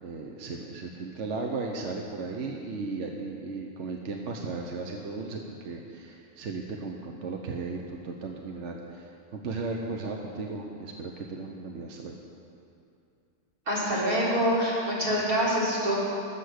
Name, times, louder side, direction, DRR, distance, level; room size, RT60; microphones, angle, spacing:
voice 1, 0.0-12.2, right 3 dB, 55° right, 1 dB, 1.2 m, -36 dB
voice 2, 13.7-16.0, equal, 75° right, -7 dB, 4.1 m, -25 dB
20.5 x 7.9 x 6.6 m, 2.6 s
omnidirectional pair, 1.5 m